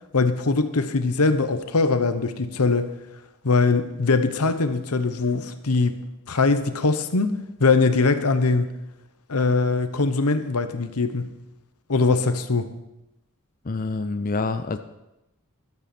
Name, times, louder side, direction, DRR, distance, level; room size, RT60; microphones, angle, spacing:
voice 1, 0.1-2.9 3.4-6.0 6.3-8.7 9.3-11.3 11.9-12.7, left 3 dB, 85° left, 10 dB, 1.0 m, -22 dB
voice 2, 13.6-14.8, left 3 dB, 40° left, 9 dB, 0.6 m, -27 dB
13.5 x 12.0 x 4.4 m, 0.91 s
head